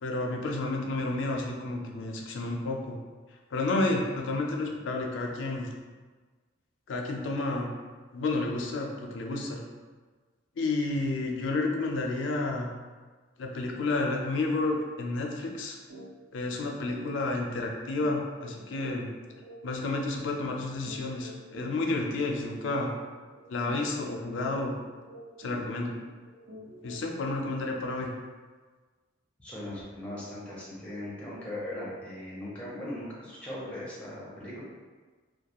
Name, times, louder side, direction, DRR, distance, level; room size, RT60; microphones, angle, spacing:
voice 1, 0.0-3.0 3.5-5.7 6.9-7.7 8.1-9.6 10.6-12.7 13.4-15.8 16.3-19.1 19.6-22.9 23.5-24.8 25.4-25.9 26.8-28.1, left 2 dB, 75° left, 1 dB, 0.4 m, -30 dB
sound 1, 15.9-16.1 16.4-16.6 16.9-27.2, equal, 85° right, 0.8 m, -48 dB
voice 2, 29.4-34.6, left 1 dB, 5° left, -8 dB, 0.6 m, -39 dB
2.3 x 2.2 x 2.8 m, 1.4 s
head